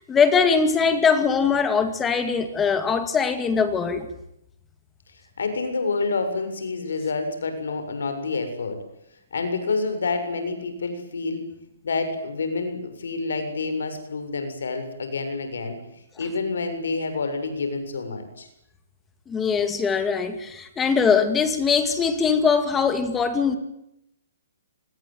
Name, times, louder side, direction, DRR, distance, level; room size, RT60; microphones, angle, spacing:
voice 1, 0.0-4.1 19.3-23.6, left 5 dB, 10° left, 10 dB, 2.3 m, -21 dB
voice 2, 5.4-8.8 9.3-11.4 11.8-15.8 16.2-18.5, left 3 dB, 85° left, 8 dB, 7.2 m, -28 dB
27.5 x 20.5 x 9.4 m, 0.81 s
hypercardioid pair, 165°, 0 cm